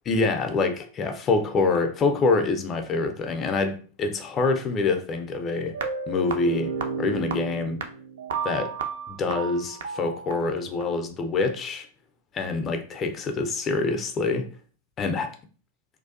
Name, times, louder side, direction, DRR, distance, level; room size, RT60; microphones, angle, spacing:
voice 1, 0.1-5.8 6.1-6.7 7.0-7.8 8.4-8.7 9.1-11.9 12.3-14.6 15.0-15.3, left 3 dB, 25° left, 0.4 m, -26 dB
sound 1, 5.7-10.8, right 5 dB, 60° right, 0.3 m, -32 dB
2.4 x 2.2 x 2.4 m
figure-of-eight pair, 90°, 0 cm